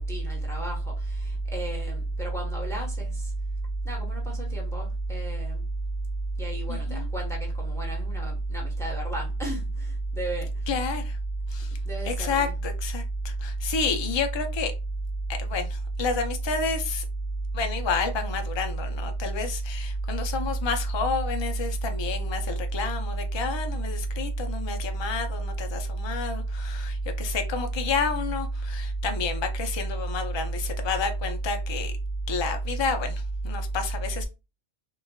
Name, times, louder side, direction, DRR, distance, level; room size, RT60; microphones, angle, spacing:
voice 1, 0.0-3.3 3.8-5.6 6.4-10.5 11.8-12.6, right 2 dB, 5° left, 1.0 m, -30 dB
voice 2, 6.7-7.1 10.7-11.2 11.5-11.8 12.0-14.7 15.3-17.0 17.5-31.9 32.3-34.2, left 5 dB, 35° left, 0.4 m, -30 dB
4.6 x 2.4 x 2.2 m
omnidirectional pair, 1.1 m